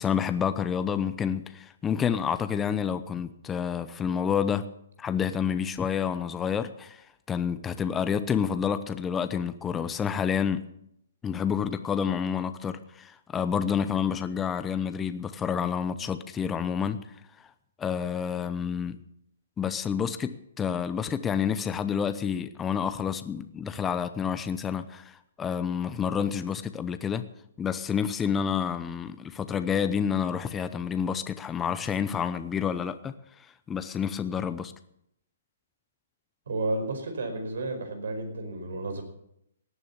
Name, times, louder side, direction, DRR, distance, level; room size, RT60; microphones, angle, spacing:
voice 1, 0.0-4.7 5.0-10.6 11.2-17.0 17.8-19.0 19.6-27.2 27.6-34.7, left 7 dB, 15° left, 0.8 m, -29 dB
voice 2, 36.5-39.0, right 2 dB, 75° right, 4.9 m, -32 dB
17.5 x 9.9 x 7.2 m
hypercardioid pair, 150°, 0 cm